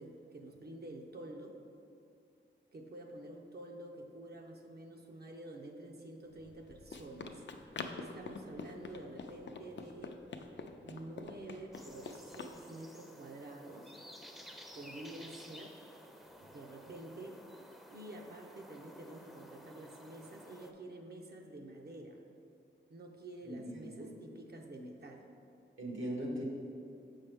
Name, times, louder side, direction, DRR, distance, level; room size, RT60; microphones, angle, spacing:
voice 1, 0.0-1.6 2.7-7.4 7.9-10.1 10.8-14.0 14.8-15.7 16.4-17.4 17.9-22.2 22.9-25.3, right 1 dB, 55° right, 1 dB, 0.6 m, -49 dB
Run, 6.4-12.6, left 4 dB, 65° left, 0.4 m, -46 dB
sound 1, 11.7-20.7, equal, ahead, 0.5 m, -54 dB
voice 2, 23.4-24.1 25.8-26.4, equal, 80° right, -2 dB, 1.2 m, -40 dB
6.8 x 5.6 x 3.4 m, 2.6 s
wide cardioid pair, 100°, 20 cm